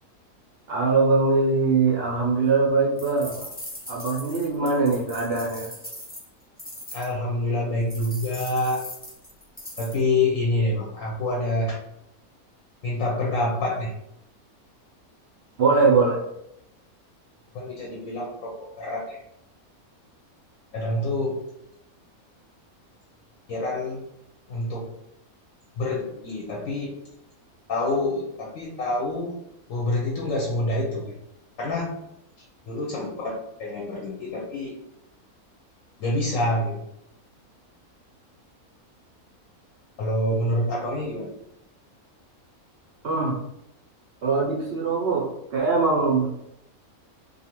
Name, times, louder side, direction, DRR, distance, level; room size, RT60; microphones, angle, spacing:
voice 1, 0.7-3.5 3.9-5.7 15.6-16.2 43.0-43.4 44.2-46.3, right 4 dB, 65° right, -3 dB, 0.6 m, -22 dB
sound 1, 3.0-7.1 7.9-10.0, left 1 dB, 15° left, 0.3 m, -40 dB
voice 2, 6.9-8.9 9.8-11.8 12.8-13.9 17.5-19.2 20.7-21.4 23.5-24.0 24.5-24.9 25.8-26.9 27.7-29.3 29.7-31.2 31.6-32.0 32.7-34.8 36.0-36.8 40.0-41.4, left 2 dB, 70° left, -2 dB, 0.9 m, -27 dB
2.6 x 2.4 x 2.9 m, 0.80 s
omnidirectional pair, 1.5 m